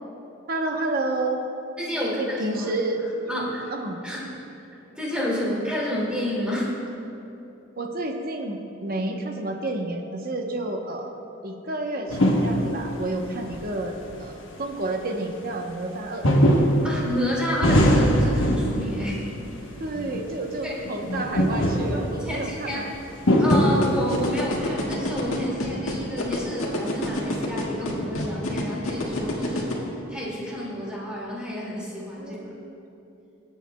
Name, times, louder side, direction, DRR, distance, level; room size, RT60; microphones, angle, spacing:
voice 1, 0.5-1.4 2.0-3.0 3.7-4.0 7.8-11.1 11.4-16.3 19.8-22.9 32.2-32.8, right 2 dB, 45° right, 3 dB, 0.9 m, -30 dB
voice 2, 1.8-2.7 3.3-3.7 4.0-4.3 4.9-6.8 16.8-19.3 20.6-20.8 21.8-22.8 23.4-29.8 30.1-32.5, equal, 5° right, -6 dB, 2.1 m, -30 dB
sound 1, 12.1-13.1 13.5-13.6 14.1-14.2 16.2-19.3 19.7-20.3 20.6-22.5 23.1-24.3, equal, 65° left, 1.2 m, -21 dB
sound 2, 23.5-29.7, left 1 dB, 85° left, 1.8 m, -27 dB
22.0 x 8.2 x 2.2 m, 2.9 s
head